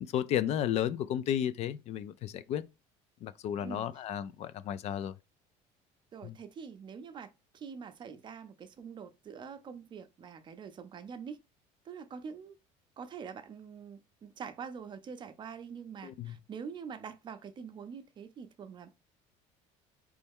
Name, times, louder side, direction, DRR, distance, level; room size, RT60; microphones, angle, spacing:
voice 1, 0.1-2.6 3.2-5.1 6.2-6.3 16.0-16.4, left 10 dB, 50° left, 0.4 m, -33 dB
voice 2, 3.6-4.0 6.1-7.3 7.5-11.4 11.9-12.6 13.0-18.9, right 6 dB, 35° right, 0.6 m, -45 dB
4.3 x 3.1 x 3.5 m
cardioid pair, 125°, 14 cm